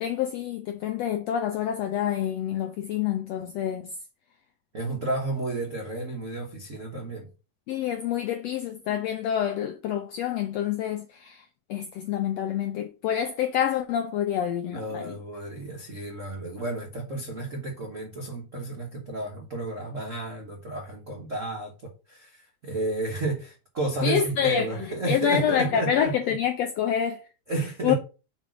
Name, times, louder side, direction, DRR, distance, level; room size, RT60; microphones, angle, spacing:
voice 1, 0.0-3.8 7.7-11.4 11.7-15.1 24.0-24.6 25.1-27.2 27.8-28.0, left 9 dB, 85° left, 1.4 m, -27 dB
voice 2, 4.7-7.3 14.7-26.3 27.5-27.9, right 2 dB, 80° right, 0.6 m, -32 dB
5.4 x 4.3 x 6.2 m
omnidirectional pair, 3.7 m